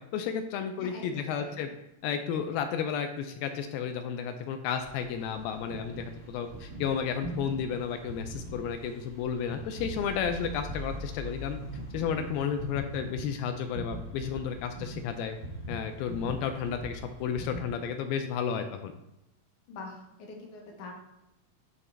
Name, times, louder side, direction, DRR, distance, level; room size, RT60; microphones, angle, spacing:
voice 1, 0.1-1.7 2.0-11.6 11.9-15.4 15.7-18.9, left 7 dB, 80° left, 7 dB, 2.2 m, -32 dB
voice 2, 0.8-1.7 19.7-20.9, left 3 dB, 65° left, 0 dB, 2.1 m, -44 dB
sound 1, 4.9-17.6, right 1 dB, 60° right, 0.7 m, -41 dB
10.5 x 3.7 x 3.3 m, 0.87 s
omnidirectional pair, 4.5 m